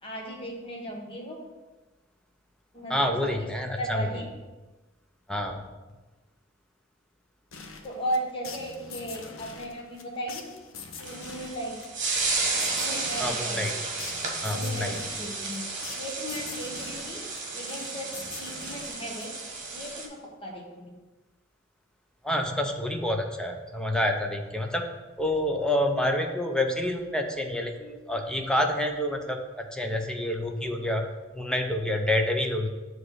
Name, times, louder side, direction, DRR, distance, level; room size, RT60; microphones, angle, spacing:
voice 1, 0.0-1.4 2.7-3.5 3.8-4.3 7.8-10.5 11.0-11.8 12.7-13.7 14.5-15.6 16.0-17.2 17.5-19.3 19.7-20.9, equal, 25° left, -1 dB, 1.3 m, -36 dB
voice 2, 2.9-4.1 5.3-5.6 13.2-13.7 14.4-15.0 22.2-24.8 25.2-32.7, left 1 dB, 5° left, 3 dB, 0.6 m, -28 dB
sound 1, 7.5-19.6, left 5 dB, 85° left, 0.8 m, -44 dB
sound 2, 11.0-20.1, right 3 dB, 40° right, 1.4 m, -32 dB
7.5 x 3.2 x 6.3 m, 1.2 s
head